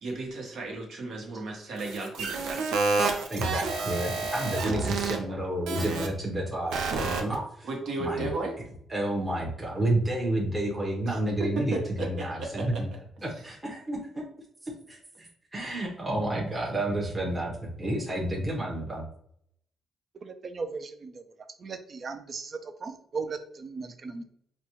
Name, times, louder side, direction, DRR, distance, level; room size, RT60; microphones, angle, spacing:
voice 1, 0.0-2.7 5.2-5.6 7.6-8.6 11.1-11.2 11.7-12.7, right 2 dB, 65° right, 0 dB, 1.2 m, -35 dB
sound 1, 1.8-5.2 5.7-6.1 6.7-7.4, right 3 dB, 85° right, 0.6 m, -29 dB
voice 2, 3.3-7.7 8.0-8.3 8.9-12.9 13.2-14.0 14.6-19.1, right 1 dB, 15° right, -3 dB, 0.9 m, -30 dB
voice 3, 20.2-21.2 21.6-24.2, right 4 dB, 45° right, 9 dB, 0.5 m, -37 dB
4.0 x 2.3 x 3.0 m, 0.67 s
cardioid pair, 90°, 0 cm